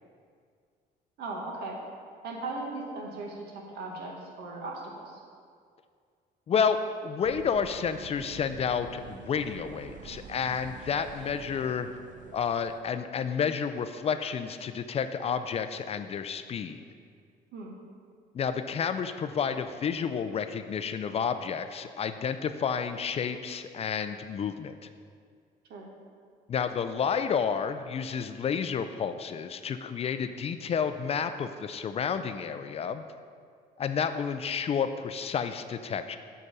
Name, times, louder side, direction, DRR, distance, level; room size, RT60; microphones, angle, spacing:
voice 1, 1.2-1.8 2.2-5.2 17.5-17.8 25.7-25.9, right 2 dB, 75° right, -1 dB, 1.6 m, -38 dB
voice 2, 7.0-11.9 12.3-16.8 18.3-24.9 26.5-33.0 33.8-36.2, left 7 dB, 35° left, 10 dB, 0.4 m, -30 dB
sound 1, 7.2-12.8, right 6 dB, 50° right, 0.6 m, -47 dB
7.9 x 4.9 x 5.4 m, 2.1 s
cardioid pair, 110°, 17 cm